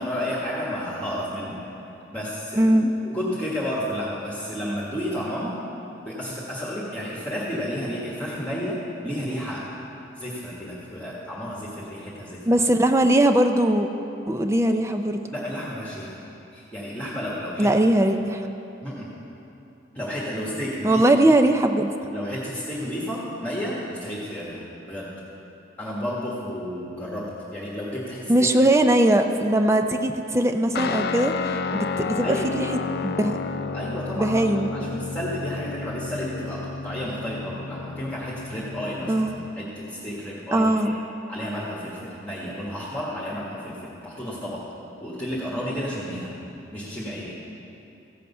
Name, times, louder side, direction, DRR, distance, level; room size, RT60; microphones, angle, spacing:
voice 1, 0.0-1.6 2.1-2.7 3.0-5.6 6.0-9.6 10.1-12.4 15.3-16.2 16.5-17.7 18.8-19.1 19.9-21.0 22.1-25.1 25.8-28.3 32.2-32.5 33.7-34.4 34.7-39.2 39.5-40.9 41.3-44.6 45.0-46.3 46.7-47.3, equal, 10° left, -7 dB, 1.5 m, -31 dB
voice 2, 2.6-2.9 12.5-13.9 14.3-15.2 17.6-18.5 20.8-21.9 28.3-31.3 31.7-33.4 34.2-34.9 39.1-39.3 40.5-41.0, right 1 dB, 15° right, 6 dB, 0.4 m, -20 dB
Guitar, 30.7-39.6, left 4 dB, 55° left, 0.4 m, -31 dB
15.0 x 7.8 x 5.5 m, 3.0 s
head